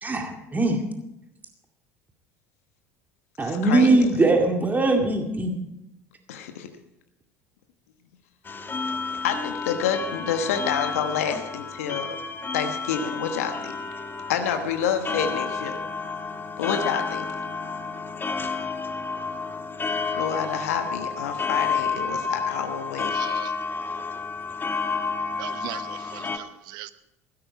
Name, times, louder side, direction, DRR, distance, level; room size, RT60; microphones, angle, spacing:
voice 1, 0.0-0.8 3.4-5.5, right 2 dB, 20° right, 3 dB, 2.2 m, -21 dB
voice 2, 3.4-3.9 6.3-6.7 9.2-12.2 12.5-13.7 14.3-15.8 16.6-17.2 20.1-23.2, left 7 dB, 75° left, 7 dB, 1.2 m, -28 dB
sound 1, 8.5-26.4, left 4 dB, 25° left, 1.3 m, -30 dB
voice 3, 23.1-23.5 25.4-26.9, right 15 dB, 60° right, 13 dB, 0.9 m, -39 dB
16.0 x 13.0 x 4.7 m, 0.86 s
hypercardioid pair, 65°, 8 cm